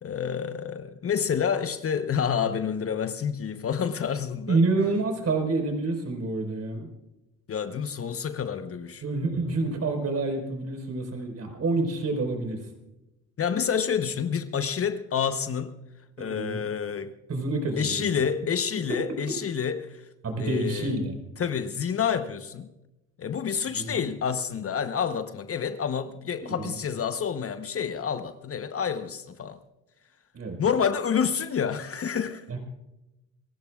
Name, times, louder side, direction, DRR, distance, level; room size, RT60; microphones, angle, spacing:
voice 1, 0.0-4.6 7.5-9.0 13.4-15.8 16.2-17.1 17.8-20.0 20.4-20.9 21.4-22.7 23.2-29.6 30.6-32.5, left 7 dB, 40° left, 1.0 m, -28 dB
voice 2, 4.5-6.9 9.0-12.6 16.2-16.6 17.3-18.2 18.8-18.9 20.2-21.2 23.7-24.1 26.4-26.8 30.3-30.6 32.5-32.6, right 3 dB, 45° right, 4.5 m, -28 dB
28.5 x 15.5 x 2.4 m
supercardioid pair, 65°, 35 cm